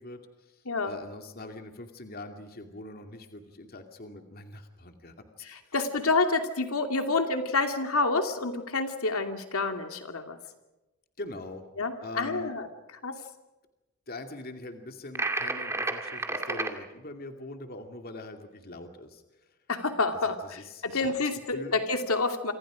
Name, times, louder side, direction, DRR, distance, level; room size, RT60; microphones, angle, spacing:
voice 1, 0.0-5.7 11.2-11.6 12.0-12.5 14.1-19.2 20.4-21.7, left 2 dB, 45° left, 5 dB, 2.4 m, -43 dB
voice 2, 5.4-10.4 11.8-12.7 13.0-13.1 19.7-22.5, left 3 dB, 70° left, 6 dB, 2.6 m, -28 dB
sound 1, 15.1-16.7, right 2 dB, 10° right, 2.3 m, -31 dB
28.5 x 26.0 x 5.0 m, 1.0 s
head